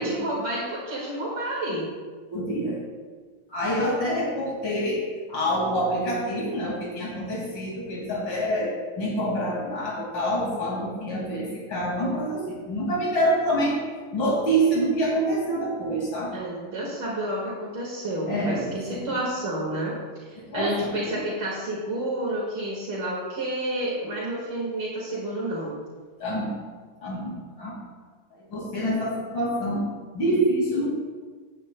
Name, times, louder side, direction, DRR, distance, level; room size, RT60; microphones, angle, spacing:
voice 1, 0.0-1.9 16.3-25.7, right 1 dB, 75° right, -5 dB, 2.6 m, -30 dB
voice 2, 2.3-2.8 3.5-13.8 14.1-16.3 18.3-19.1 20.5-21.2 26.2-26.6 27.0-27.8 28.3-29.9 30.1-30.9, right 1 dB, 90° left, -4 dB, 3.0 m, -26 dB
16.0 x 9.2 x 2.2 m, 1.5 s
omnidirectional pair, 2.0 m